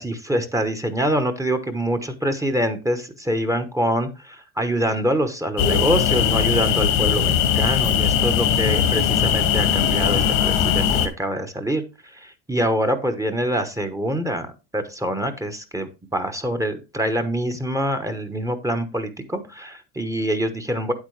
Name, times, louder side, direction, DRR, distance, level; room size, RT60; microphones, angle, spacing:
voice 1, 0.0-20.9, right 1 dB, 10° right, 8 dB, 1.0 m, -25 dB
sound 1, 5.6-11.1, left 8 dB, 90° left, 2.0 m, -20 dB
8.8 x 8.3 x 3.3 m, 0.28 s
cardioid pair, 125°, 37 cm